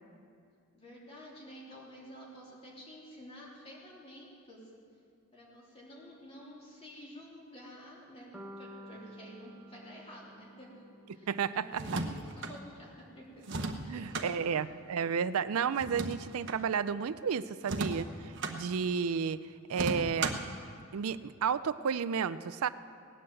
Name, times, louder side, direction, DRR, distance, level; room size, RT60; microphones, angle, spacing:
voice 1, 0.7-4.7 5.3-10.8 11.1-13.5 13.8-14.6, equal, 25° left, -4 dB, 3.2 m, -51 dB
sound 1, 8.3-12.4, equal, 5° right, 1.1 m, -52 dB
voice 2, 11.3-11.8 13.9-19.4 19.7-20.4 20.9-22.7, right 6 dB, 75° right, 15 dB, 0.4 m, -32 dB
sound 2, 11.7-12.5 13.4-14.3 15.8-16.6 17.6-18.6 19.7-20.5, right 2 dB, 55° right, 1.0 m, -35 dB
17.5 x 9.7 x 7.7 m, 2.3 s
head